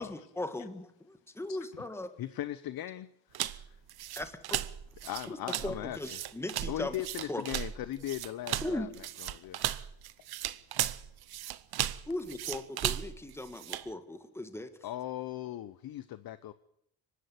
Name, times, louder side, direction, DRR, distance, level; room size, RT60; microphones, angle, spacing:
voice 1, 0.0-2.1 4.2-4.3 5.3-7.0 7.3-7.4 8.6-8.9 12.1-14.7, left 1 dB, 5° left, 1.6 m, -38 dB
voice 2, 1.2-1.9 3.3-3.9 9.3-9.5 10.0-11.6 11.9-12.1, left 12 dB, 70° left, 1.5 m, -60 dB
voice 3, 2.2-3.1 3.4-3.6 5.1-6.0 6.7-8.9 9.3-9.6 14.8-16.5, left 13 dB, 50° left, 0.8 m, -38 dB
sound 1, 3.3-13.9, right 13 dB, 55° right, 0.9 m, -36 dB
24.5 x 11.5 x 9.6 m
cardioid pair, 140°, 45 cm